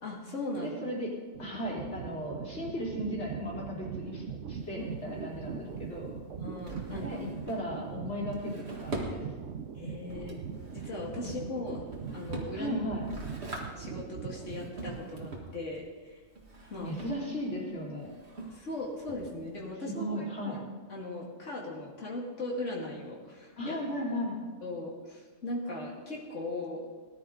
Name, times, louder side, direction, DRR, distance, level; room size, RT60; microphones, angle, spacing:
voice 1, 0.0-0.7 4.8-5.2 6.4-7.1 9.7-10.4 10.7-11.8 12.1-12.8 13.5-16.2 16.7-16.9 18.5-20.6 20.9-23.8 24.6-26.8, left 2 dB, 85° left, -3 dB, 2.6 m, -38 dB
voice 2, 0.5-1.1 1.4-6.1 6.9-9.2 11.2-11.3 12.5-13.1 16.8-18.1 20.0-20.6 23.6-24.4, equal, 70° left, -5 dB, 3.9 m, -36 dB
sound 1, 1.3-15.6, right 7 dB, 80° right, 1.2 m, -41 dB
Drawer open or close, 4.5-19.7, right 2 dB, 60° right, 2.1 m, -45 dB
19.0 x 11.5 x 3.9 m, 1.3 s
omnidirectional pair, 1.2 m